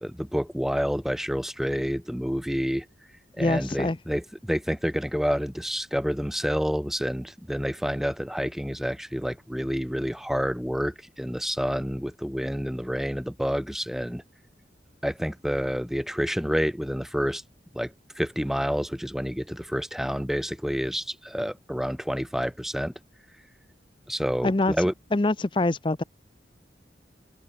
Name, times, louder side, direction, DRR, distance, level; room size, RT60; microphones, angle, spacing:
voice 1, 0.0-2.9 3.4-14.2 15.0-17.4 17.7-17.9 18.2-22.9 24.1-24.9, equal, ahead, 2.5 m, -28 dB
voice 2, 3.4-4.0 24.4-24.7 25.1-26.0, left 2 dB, 25° left, 0.6 m, -24 dB
open air
head